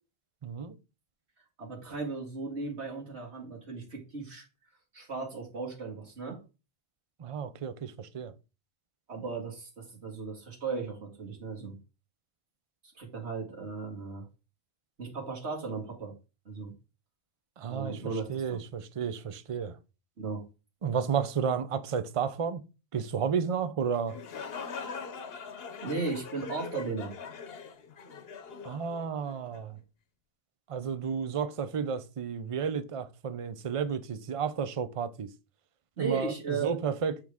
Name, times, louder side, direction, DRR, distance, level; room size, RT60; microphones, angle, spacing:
voice 1, 0.4-0.8 7.2-8.3 17.6-19.8 20.8-22.6 22.9-24.2 28.6-29.8 30.7-35.3 36.0-37.2, right 6 dB, 35° right, 0.6 m, -32 dB
voice 2, 1.6-4.4 4.9-6.4 9.1-11.8 13.0-14.2 15.0-16.1 16.5-16.7 17.7-18.6 20.2-20.4 25.8-27.1 36.0-36.7, right 4 dB, 80° right, 2.4 m, -36 dB
sound 1, 23.9-29.6, left 5 dB, 65° left, 1.0 m, -42 dB
8.7 x 4.6 x 3.6 m
omnidirectional pair, 1.1 m